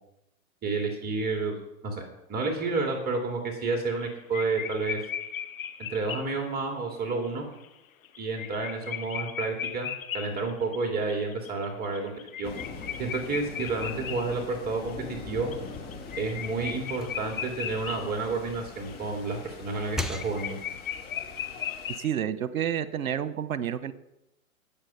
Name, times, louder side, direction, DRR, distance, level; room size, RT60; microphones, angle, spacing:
voice 1, 0.6-2.0 2.3-5.0 5.9-7.5 8.2-9.9 10.1-12.5 13.0-15.5 16.2-20.6, right 3 dB, 20° right, 3 dB, 2.5 m, -30 dB
sound 1, 3.6-4.1 4.3-6.6 7.2-7.3 7.6-7.7 8.0-14.9 15.3-18.2 18.5-18.6 18.9-22.1, left 9 dB, 75° left, 1.3 m, -37 dB
sound 2, 12.4-22.0, left 4 dB, 25° left, 3.2 m, -43 dB
sound 3, 15.6-18.6 19.1-20.9, left 1 dB, ahead, 0.6 m, -41 dB
voice 2, 22.0-23.9, right 9 dB, 70° right, 15 dB, 1.0 m, -29 dB
18.0 x 7.1 x 5.6 m, 0.89 s
hypercardioid pair, 110°, 42 cm